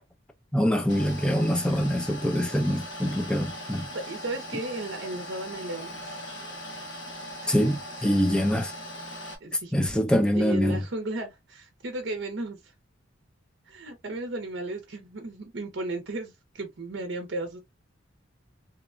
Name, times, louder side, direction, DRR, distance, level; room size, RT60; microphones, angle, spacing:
voice 1, 0.5-3.9 7.5-8.7 9.7-10.8, equal, 5° left, 0.4 m, -24 dB
sound 1, 0.9-9.4, equal, 65° left, 1.2 m, -40 dB
voice 2, 3.9-6.2 7.4-7.5 8.2-8.3 9.4-9.7 10.2-12.7 13.7-17.6, right 2 dB, 60° right, 0.6 m, -35 dB
2.9 x 2.1 x 2.4 m
head